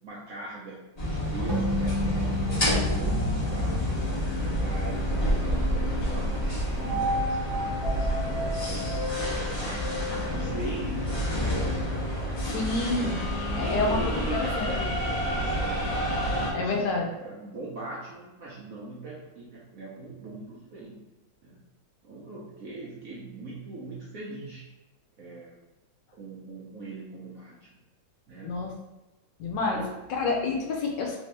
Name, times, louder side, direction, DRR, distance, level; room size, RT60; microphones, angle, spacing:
voice 1, 0.0-0.8 1.1-3.2 3.5-3.8 4.4-9.0 9.4-11.8 12.3-12.6 13.5-21.0 21.4-21.6 22.0-24.7 25.2-25.5 26.1-27.7 28.3-28.6 29.7-30.0, right 3 dB, 65° right, -6 dB, 0.9 m, -41 dB
sound 1, 1.0-16.5, equal, 30° left, 0.7 m, -28 dB
sound 2, 1.5-5.0, left 1 dB, 15° right, 0.7 m, -33 dB
voice 2, 12.5-13.2 13.6-14.9 16.5-17.1 28.4-28.7 29.4-29.8 30.1-31.2, left 3 dB, 75° left, 1 dB, 1.2 m, -28 dB
3.4 x 2.7 x 3.2 m, 1.1 s
omnidirectional pair, 2.1 m